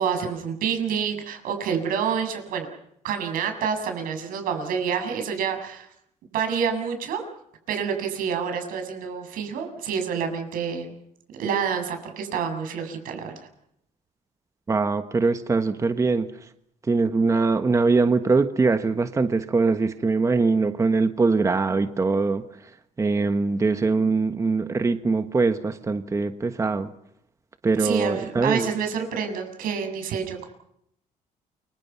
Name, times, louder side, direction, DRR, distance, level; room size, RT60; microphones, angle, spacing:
voice 1, 0.0-2.7 3.0-5.9 6.3-7.2 7.7-10.9 11.4-13.3 27.8-30.5, right 7 dB, 80° right, 5 dB, 7.6 m, -28 dB
voice 2, 14.7-16.5 16.8-22.7 23.0-26.9 27.6-28.7, right 4 dB, 20° right, 9 dB, 1.3 m, -22 dB
29.0 x 25.0 x 5.9 m, 0.75 s
cardioid pair, 125°, 14 cm